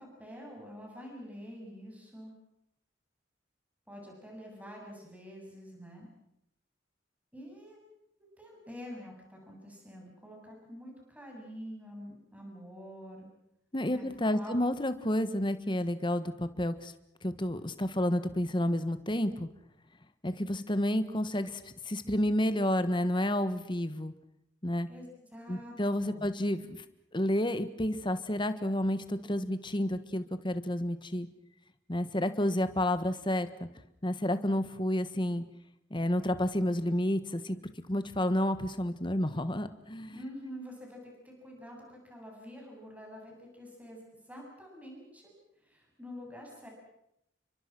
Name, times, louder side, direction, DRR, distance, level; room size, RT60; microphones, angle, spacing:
voice 1, 0.0-2.3 3.9-6.1 7.3-7.8 8.4-13.3 13.9-14.6 24.9-25.1 25.3-26.3 40.1-45.3 45.6-46.7, equal, 10° right, 0 dB, 8.0 m, -47 dB
voice 2, 13.7-16.9 17.2-19.5 20.2-24.1 24.6-24.9 25.5-26.8 27.1-31.3 31.9-33.7 34.0-35.4 35.9-37.6 37.9-40.2, left 1 dB, 25° left, 11 dB, 1.5 m, -30 dB
30.0 x 24.0 x 6.1 m, 0.80 s
head